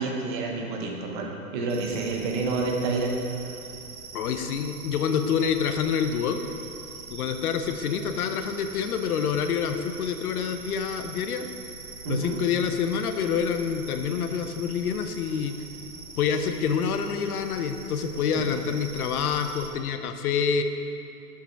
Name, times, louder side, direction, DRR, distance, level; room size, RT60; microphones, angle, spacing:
voice 1, 0.0-3.1 12.0-12.4 18.3-18.5, right 3 dB, 35° right, 1 dB, 1.0 m, -29 dB
sound 1, 1.7-19.7, right 4 dB, 75° right, 1.2 m, -43 dB
voice 2, 4.1-6.4 7.1-11.5 12.1-15.6 16.2-20.6, left 7 dB, 70° left, 7 dB, 0.8 m, -27 dB
7.3 x 6.8 x 4.6 m, 2.8 s
hypercardioid pair, 150°, 45 cm